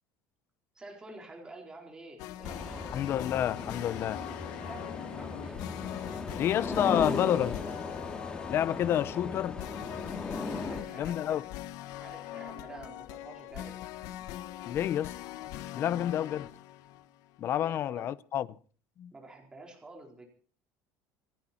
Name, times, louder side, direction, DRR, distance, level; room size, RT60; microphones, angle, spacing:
voice 1, 0.7-2.9 4.5-5.7 10.6-11.5 12.0-13.8 17.6-18.1 19.1-20.2, right 2 dB, 10° right, 4.3 m, -49 dB
sound 1, 2.2-17.4, left 14 dB, 65° left, 1.1 m, -42 dB
sound 2, 2.4-10.8, left 3 dB, 15° left, 2.5 m, -37 dB
voice 2, 2.9-4.2 6.3-7.6 8.5-9.6 11.0-11.4 14.7-15.1 15.7-16.5 17.4-18.5 19.0-19.1, left 11 dB, 35° left, 0.7 m, -29 dB
28.0 x 10.5 x 4.4 m
cardioid pair, 165°, 7 cm